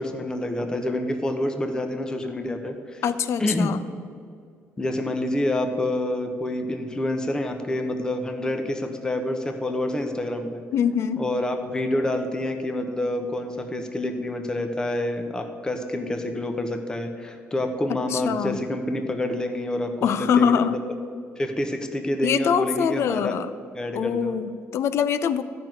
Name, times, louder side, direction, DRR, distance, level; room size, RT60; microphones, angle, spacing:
voice 1, 0.0-3.0 3.4-3.8 4.8-10.6 11.2-20.7 21.4-23.4 23.7-24.4, left 1 dB, 15° left, 5 dB, 1.0 m, -27 dB
voice 2, 3.0-3.8 10.7-11.2 18.1-18.6 20.0-20.8 22.2-23.5 23.9-25.4, left 7 dB, 55° left, 13 dB, 0.6 m, -23 dB
13.0 x 6.2 x 9.2 m, 2.3 s
cardioid pair, 130°, 5 cm